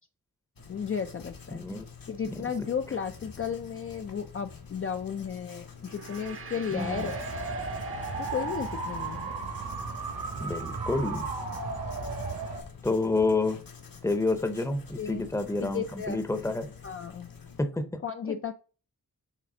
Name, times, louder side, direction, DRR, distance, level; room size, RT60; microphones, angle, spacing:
Writing, 0.6-17.6, left 6 dB, 70° left, 1.4 m, -48 dB
voice 1, 0.7-1.6 2.1-7.3 8.1-9.5 15.0-15.2 15.6-16.2 16.8-17.3 18.0-18.5, left 7 dB, 40° left, 6 dB, 0.4 m, -34 dB
voice 2, 1.5-1.8 2.3-2.5 6.7-7.1 10.4-11.3 12.8-13.6 14.0-16.7 17.6-18.4, left 3 dB, 10° left, 8 dB, 0.7 m, -29 dB
Gong, 5.8-10.4, right 6 dB, 40° right, 0.7 m, -46 dB
sound 1, 6.7-12.6, right 3 dB, 85° right, 2.1 m, -34 dB
7.4 x 3.4 x 3.8 m, 0.37 s
wide cardioid pair, 115°, 35 cm